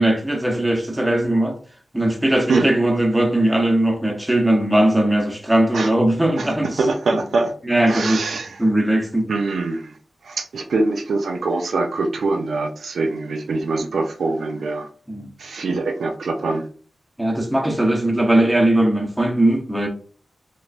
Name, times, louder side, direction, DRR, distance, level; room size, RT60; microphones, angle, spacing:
voice 1, 0.0-1.6 1.9-6.8 7.6-8.2 8.6-9.3 15.1-15.3 17.2-19.9, right 1 dB, 10° right, 0.7 m, -19 dB
voice 2, 6.4-7.5 7.9-8.6 9.3-10.0 10.2-14.9 15.4-16.7, right 3 dB, 85° right, 0.5 m, -23 dB
3.3 x 3.0 x 2.4 m
wide cardioid pair, 130°, 0 cm